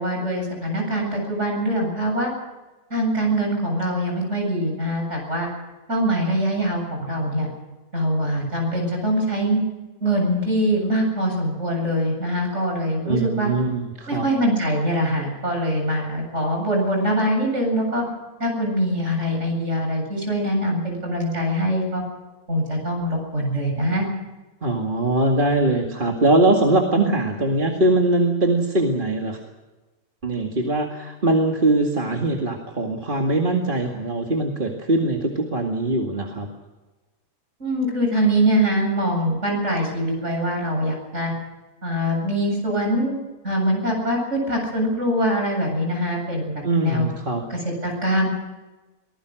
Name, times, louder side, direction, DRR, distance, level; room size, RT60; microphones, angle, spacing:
voice 1, 0.0-2.3 2.9-5.5 5.9-7.5 7.9-9.6 10.0-13.5 14.1-18.1 18.4-22.0 22.5-24.1 37.6-41.3 41.8-43.1 43.4-47.1 47.5-48.3, equal, 50° right, 1 dB, 8.3 m, -23 dB
voice 2, 13.0-14.3 24.6-29.4 30.2-36.5 46.6-47.4, right 2 dB, 35° right, 1 dB, 2.3 m, -21 dB
24.0 x 20.0 x 6.5 m, 1.2 s
omnidirectional pair, 1.6 m